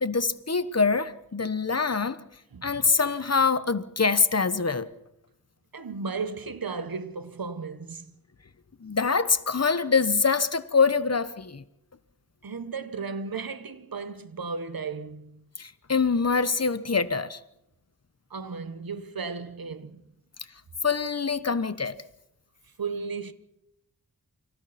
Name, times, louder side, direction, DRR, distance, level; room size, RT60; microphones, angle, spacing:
voice 1, 0.0-2.2 2.6-4.9 8.8-11.6 15.6-17.4 20.8-22.0, left 5 dB, 45° left, 1.2 m, -24 dB
voice 2, 2.5-2.9 5.7-8.1 12.4-15.4 18.3-20.0 22.8-23.3, right 4 dB, 85° right, 1.3 m, -35 dB
29.0 x 25.5 x 4.3 m
wide cardioid pair, 70°, 35 cm